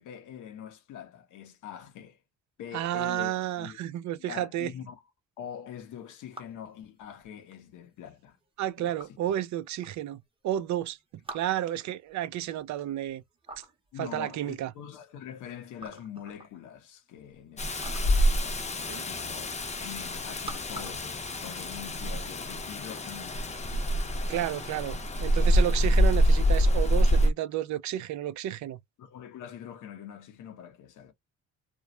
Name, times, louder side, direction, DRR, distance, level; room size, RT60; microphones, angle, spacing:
voice 1, 0.0-2.2 2.6-3.8 4.2-5.0 5.4-8.4 8.8-9.2 13.9-23.9 25.8-26.0 29.0-31.1, left 9 dB, 80° left, 0.9 m, -44 dB
voice 2, 2.7-4.7 8.6-11.0 11.3-13.2 14.0-14.7 18.9-19.0 24.3-28.8, right 12 dB, 70° right, 0.4 m, -31 dB
sound 1, 5.8-22.1, right 2 dB, 20° right, 0.8 m, -50 dB
Rain, 17.6-27.3, equal, 25° left, 0.6 m, -26 dB
2.3 x 2.0 x 2.9 m
cardioid pair, 90°, 30 cm